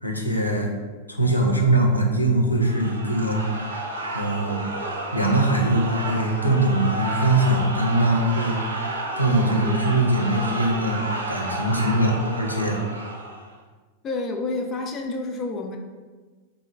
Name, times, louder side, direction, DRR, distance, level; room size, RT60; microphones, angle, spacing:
voice 1, 0.0-0.7 1.1-3.4 4.1-4.7 5.1-8.6 9.2-12.8, right 1 dB, 90° left, 0 dB, 0.4 m, -22 dB
sound 1, 2.6-13.5, right 2 dB, 70° right, 0.4 m, -31 dB
voice 2, 14.0-15.8, left 3 dB, 25° left, 3 dB, 0.3 m, -29 dB
3.7 x 2.0 x 3.3 m, 1.3 s
figure-of-eight pair, 90°, 0 cm